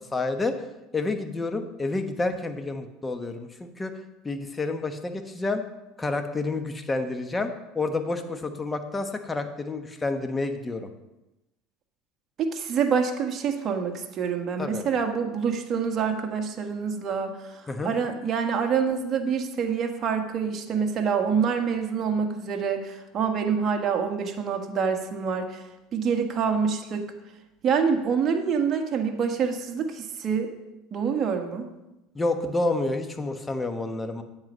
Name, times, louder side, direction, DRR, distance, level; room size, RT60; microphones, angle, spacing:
voice 1, 0.1-0.7 0.9-3.9 4.2-5.6 6.0-10.9 14.6-14.8 17.7-17.9 32.1-34.2, left 2 dB, 15° left, 7 dB, 1.1 m, -29 dB
voice 2, 12.4-25.6 25.9-27.1 27.6-30.5 30.9-31.7, right 6 dB, 40° right, 4 dB, 1.6 m, -26 dB
9.2 x 7.8 x 5.5 m, 0.97 s
supercardioid pair, 110°, 0 cm